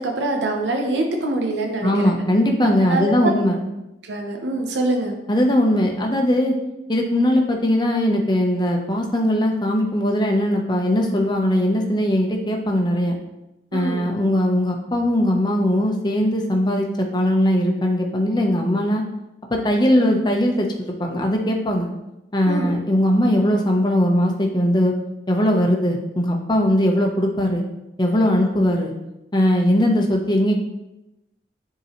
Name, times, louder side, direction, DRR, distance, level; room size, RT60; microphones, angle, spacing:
voice 1, 0.0-2.1 2.6-3.4 4.0-5.2 13.7-14.0 22.5-22.7, right 2 dB, 85° right, 2 dB, 0.9 m, -24 dB
voice 2, 1.8-3.6 5.3-6.5 6.9-13.2 13.7-19.0 19.5-21.9 22.3-24.9 25.3-27.6 28.0-28.9 29.3-30.5, left 1 dB, 25° left, 1 dB, 0.8 m, -20 dB
9.4 x 3.8 x 3.1 m, 0.93 s
head